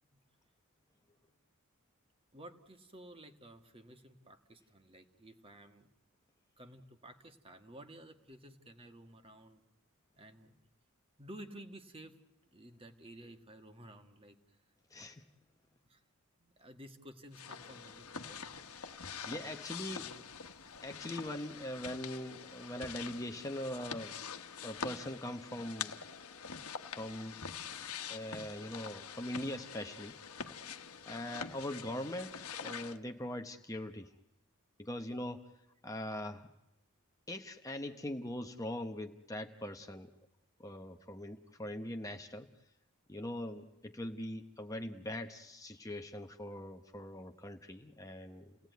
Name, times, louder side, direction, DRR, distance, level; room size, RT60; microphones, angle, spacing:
voice 1, 2.3-5.9 6.6-9.6 10.2-10.6 11.2-12.1 12.5-14.6 15.8-16.0 16.4-18.6 19.3-19.5 20.0-20.2, right 1 dB, 25° right, 7 dB, 1.6 m, -53 dB
voice 2, 14.9-15.2 18.8-20.1 20.8-24.2 24.6-26.0 27.0-27.4 28.1-30.2 31.1-34.1 34.8-35.5 35.8-36.5 37.3-40.1 40.6-42.5 43.1-48.6, left 1 dB, 15° left, 5 dB, 0.9 m, -42 dB
sound 1, 17.3-33.0, left 6 dB, 75° left, 1.2 m, -45 dB
29.5 x 18.0 x 9.3 m, 0.96 s
head